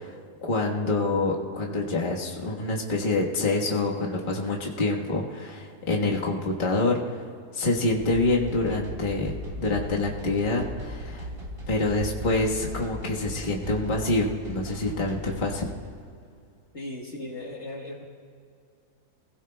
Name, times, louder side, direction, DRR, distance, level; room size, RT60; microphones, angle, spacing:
voice 1, 0.0-7.2 7.5-11.3 11.7-15.7, left 2 dB, 35° left, -2 dB, 1.5 m, -26 dB
sound 1, 7.9-15.9, equal, 45° right, 3.0 m, -38 dB
voice 2, 16.7-18.0, left 1 dB, 50° left, -1 dB, 1.6 m, -37 dB
26.5 x 16.5 x 2.3 m, 2.3 s
omnidirectional pair, 1.6 m